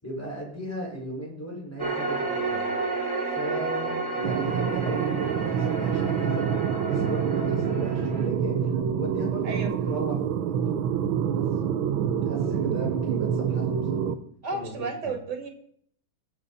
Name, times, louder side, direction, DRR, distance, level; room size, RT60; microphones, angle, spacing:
voice 1, 0.0-2.7 3.3-6.5 6.9-10.1 10.5-10.8 11.3-11.5 12.3-14.1 14.4-15.1, right 1 dB, 5° left, -3 dB, 5.1 m, -37 dB
sound 1, 1.8-8.3, right 3 dB, 40° right, 3.0 m, -31 dB
sound 2, 4.2-14.1, right 8 dB, 90° right, 1.7 m, -27 dB
voice 2, 14.4-15.5, right 4 dB, 55° right, 4 dB, 2.6 m, -32 dB
21.0 x 7.2 x 4.1 m, 0.65 s
omnidirectional pair, 2.2 m